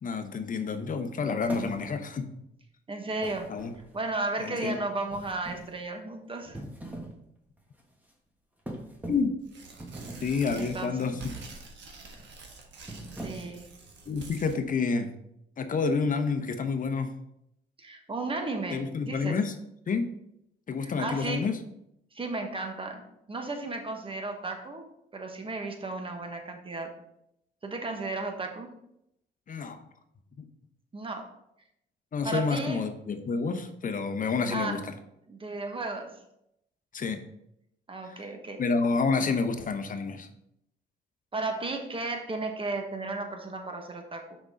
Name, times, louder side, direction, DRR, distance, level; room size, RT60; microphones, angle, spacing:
voice 1, 0.0-2.3 3.5-3.7 4.4-4.8 9.1-9.3 10.2-11.4 14.1-15.1 15.6-17.1 18.7-19.5 19.9-20.1 20.7-21.6 29.5-29.8 30.4-30.5 32.1-34.8 36.9-37.2 38.0-38.2 38.6-40.3, left 4 dB, 45° left, 7 dB, 0.8 m, -29 dB
sound 1, 1.5-2.1 3.2-4.1 5.1-5.8 6.4-7.2 7.6-7.8 8.7-9.4 9.8-10.4 11.1-11.6 12.0-12.3 12.8-13.6, right 1 dB, 10° right, 1.3 m, -41 dB
voice 2, 2.9-3.5 3.9-6.6 10.5-11.1 13.1-13.7 17.8-19.4 20.8-21.5 22.1-23.0 23.3-24.9 25.1-26.9 27.6-28.7 30.9-31.3 32.2-32.8 34.5-34.8 35.3-36.2 37.9-38.6 41.3-44.4, right 3 dB, 25° right, 4 dB, 1.2 m, -34 dB
Tearing, 9.4-14.6, right 4 dB, 65° right, 1.4 m, -47 dB
6.1 x 5.2 x 3.8 m, 0.79 s
cardioid pair, 90°, 20 cm